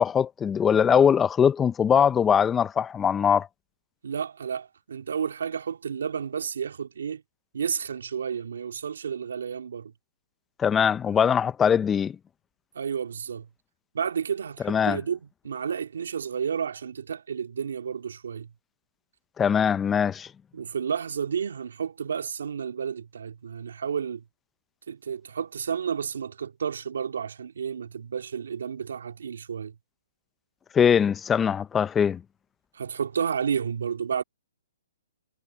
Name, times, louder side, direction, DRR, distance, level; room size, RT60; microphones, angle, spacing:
voice 1, 0.0-3.5 10.6-12.2 14.6-15.0 19.4-20.3 30.7-32.2, left 7 dB, 15° left, 0.5 m, -21 dB
voice 2, 4.0-7.2 7.5-9.9 12.7-13.5 13.9-18.5 20.5-24.2 24.9-29.8 32.7-34.2, right 7 dB, 75° right, 2.1 m, -31 dB
hypercardioid pair, 150°, 0 cm